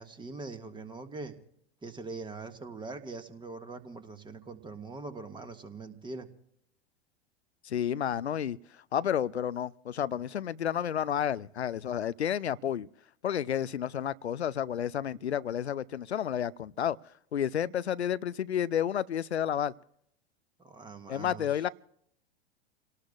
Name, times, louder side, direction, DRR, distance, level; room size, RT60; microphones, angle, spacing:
voice 1, 0.0-1.4 1.8-6.3 20.6-21.6, right 3 dB, 15° right, 1.7 m, -42 dB
voice 2, 7.6-12.9 13.2-17.0 17.3-19.7 21.1-21.7, left 9 dB, 85° left, 0.5 m, -31 dB
29.5 x 18.5 x 2.4 m
figure-of-eight pair, 90°, 32 cm